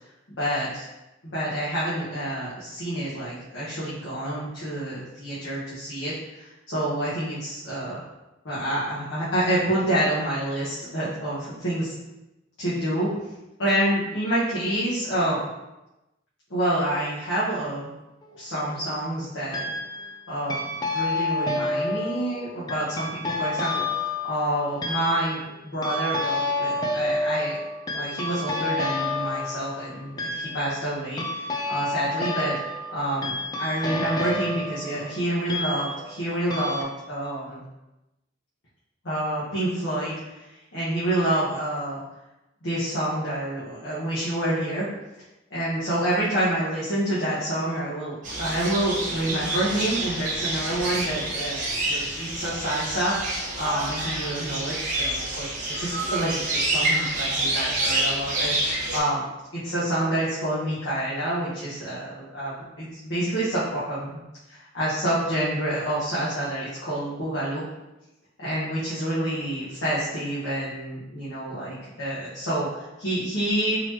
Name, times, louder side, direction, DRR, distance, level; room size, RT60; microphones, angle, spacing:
voice 1, 0.4-0.9 1.2-8.0 8.4-12.0 12.6-13.1 13.6-15.4 16.5-17.9 18.4-19.7 20.3-20.6 20.9-27.6 27.9-32.6 32.9-33.3 33.6-37.6 39.0-40.5 40.7-42.0 42.6-44.9 45.5-59.2 59.5-64.1 64.5-67.6 68.4-73.8, right 1 dB, 70° left, -10 dB, 1.1 m, -28 dB
sound 1, 18.2-18.8 19.5-20.2 20.5-36.2 36.5-36.8, left 2 dB, 20° left, 0.4 m, -29 dB
sound 2, 48.2-59.0, right 2 dB, 45° right, 1.1 m, -28 dB
4.1 x 3.0 x 2.9 m, 0.98 s
head